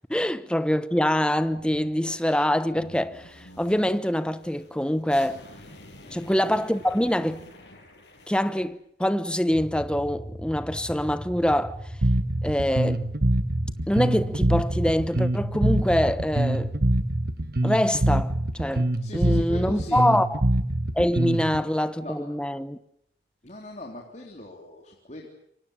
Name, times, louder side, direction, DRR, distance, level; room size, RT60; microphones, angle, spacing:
voice 1, 0.1-5.4 6.1-7.4 8.3-11.8 12.4-13.1 13.9-16.8 17.6-20.4 20.9-22.8, equal, 5° left, 1.0 m, -25 dB
sound 1, 1.3-8.7, left 1 dB, 80° left, 6.5 m, -48 dB
sound 2, 9.5-17.1, equal, 30° right, 4.0 m, -38 dB
Bass guitar, 12.0-21.6, right 1 dB, 55° right, 1.4 m, -24 dB
voice 2, 19.0-20.1 21.5-22.2 23.4-25.3, left 1 dB, 40° left, 3.6 m, -41 dB
27.0 x 24.0 x 7.3 m
head